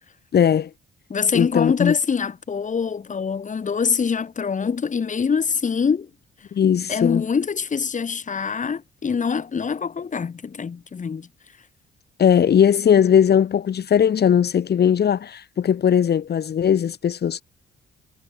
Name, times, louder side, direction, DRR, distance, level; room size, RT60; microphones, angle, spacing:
voice 1, 0.3-0.7 1.3-1.9 6.5-7.2 12.2-17.4, left 8 dB, 55° left, 2.9 m, -18 dB
voice 2, 1.1-6.1 6.9-11.3, left 6 dB, 40° left, 3.4 m, -24 dB
cardioid pair, 90°, 20 cm